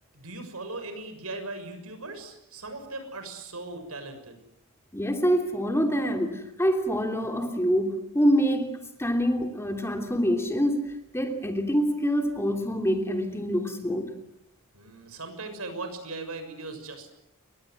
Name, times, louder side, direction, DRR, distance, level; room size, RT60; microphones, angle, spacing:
voice 1, 0.1-4.4 14.7-17.1, right 2 dB, 75° right, 6.7 m, -38 dB
voice 2, 4.9-14.1, equal, 10° left, 3.0 m, -26 dB
30.0 x 23.5 x 7.9 m
head